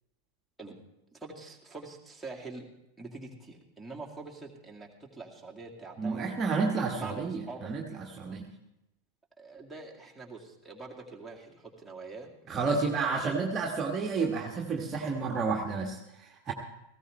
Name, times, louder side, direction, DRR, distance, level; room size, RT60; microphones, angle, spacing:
voice 1, 1.1-2.7 3.0-6.3 6.9-7.7 9.4-13.4, right 3 dB, 5° right, -2 dB, 2.2 m, -45 dB
voice 2, 6.0-8.5 12.5-16.5, right 4 dB, 25° right, 0 dB, 1.5 m, -31 dB
18.0 x 15.5 x 3.3 m, 0.89 s
figure-of-eight pair, 90°, 0 cm